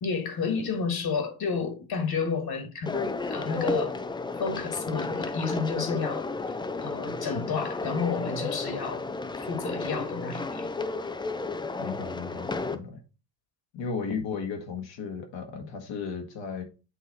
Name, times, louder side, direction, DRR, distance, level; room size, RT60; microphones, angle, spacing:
voice 1, 0.0-4.0 4.4-6.3 6.8-9.1 9.4-10.7, left 5 dB, 50° left, 1.8 m, -31 dB
sound 1, 2.9-12.8, left 3 dB, 10° left, 0.4 m, -32 dB
voice 2, 11.8-13.0 13.7-16.6, left 5 dB, 65° left, 1.5 m, -35 dB
8.1 x 3.0 x 4.1 m
supercardioid pair, 75°, 48 cm